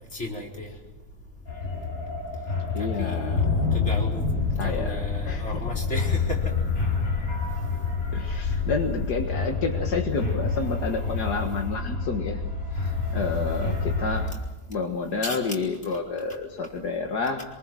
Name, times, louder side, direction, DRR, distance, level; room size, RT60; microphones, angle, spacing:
voice 1, 0.1-0.7 3.0-3.4 3.7-4.2 4.6-6.4 15.2-15.4, left 1 dB, 40° left, -1 dB, 4.9 m, -34 dB
sound 1, 1.5-14.3, left 4 dB, 60° left, 6.9 m, -27 dB
voice 2, 2.7-3.6 4.6-5.6 8.1-12.4 12.7-14.3 14.7-17.4, left 4 dB, 75° left, 3 dB, 2.2 m, -30 dB
25.0 x 23.0 x 7.6 m, 0.97 s
omnidirectional pair, 1.7 m